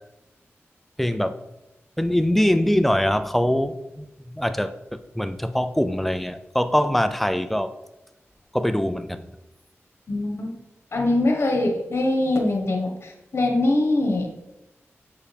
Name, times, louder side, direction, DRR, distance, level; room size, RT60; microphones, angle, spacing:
voice 1, 1.0-1.4 2.0-4.1 4.3-7.7 8.5-9.2, equal, 5° left, 10 dB, 0.5 m, -23 dB
voice 2, 10.1-10.6 10.9-14.3, left 2 dB, 60° left, 2 dB, 1.4 m, -23 dB
6.9 x 5.7 x 3.5 m, 0.95 s
wide cardioid pair, 70°, 5 cm